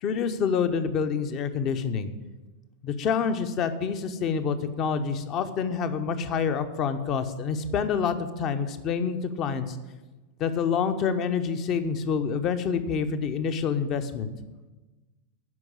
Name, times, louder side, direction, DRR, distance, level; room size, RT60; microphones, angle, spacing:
voice 1, 0.0-2.1 2.8-9.8 10.4-14.3, left 6 dB, 35° left, 9 dB, 0.9 m, -27 dB
11.0 x 5.3 x 8.6 m, 1.2 s
figure-of-eight pair, 90°, 0 cm